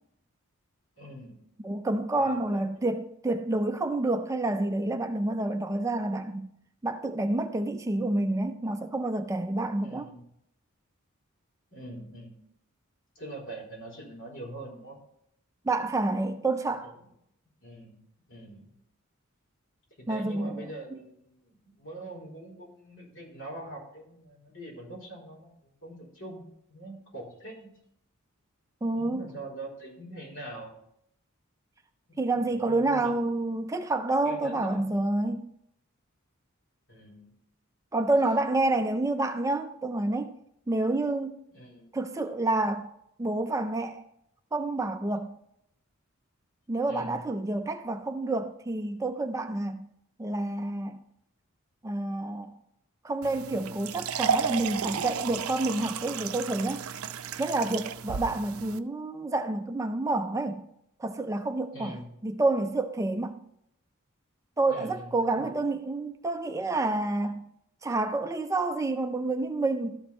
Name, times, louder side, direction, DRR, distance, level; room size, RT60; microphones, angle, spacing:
voice 1, 1.0-1.4 2.1-2.4 2.8-2.9 9.8-10.3 11.7-12.3 13.1-15.0 16.8-16.9 17.6-18.0 18.3-18.7 20.0-26.4 26.7-27.7 28.9-30.8 32.1-33.1 34.2-34.9 36.9-37.3 41.5-41.9 46.9-47.2 61.7-62.1 64.7-65.6, right 1 dB, 60° left, 4.1 m, -43 dB
voice 2, 1.6-6.5 6.8-10.1 15.7-16.9 20.1-21.0 28.8-29.2 32.2-35.5 37.9-40.3 40.7-41.4 41.9-42.9 43.2-44.0 44.5-45.3 46.7-49.9 50.2-51.0 51.8-52.5 53.0-56.8 57.4-60.6 61.0-62.0 62.2-63.4 64.6-67.4 67.8-70.0, right 2 dB, 15° right, 0.4 m, -28 dB
sound 1, 53.2-58.8, right 6 dB, 75° right, 0.5 m, -33 dB
12.5 x 4.6 x 4.1 m
head